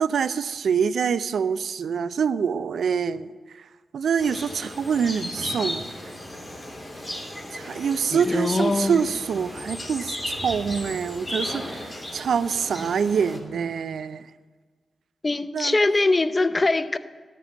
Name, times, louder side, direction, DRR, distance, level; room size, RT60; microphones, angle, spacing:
voice 1, 0.0-3.3 3.6-3.7 3.9-5.8 7.5-14.3 15.5-15.8, right 6 dB, 75° right, 16 dB, 0.4 m, -25 dB
sound 1, 4.2-13.4, left 1 dB, 10° left, 3.6 m, -35 dB
voice 2, 8.1-9.1 15.2-17.0, left 2 dB, 35° left, 13 dB, 0.6 m, -22 dB
12.0 x 6.7 x 8.8 m, 1.5 s
supercardioid pair, 40°, 0 cm